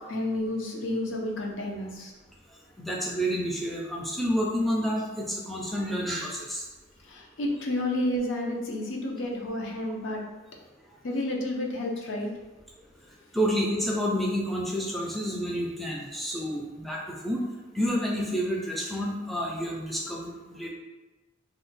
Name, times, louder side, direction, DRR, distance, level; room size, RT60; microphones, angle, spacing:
voice 1, 0.1-2.1 7.1-10.2 11.0-12.3, left 1 dB, 75° left, -1 dB, 0.6 m, -30 dB
voice 2, 2.8-6.6 13.3-17.4 17.7-20.7, equal, ahead, -3 dB, 0.3 m, -29 dB
2.7 x 2.1 x 4.0 m, 1.1 s
head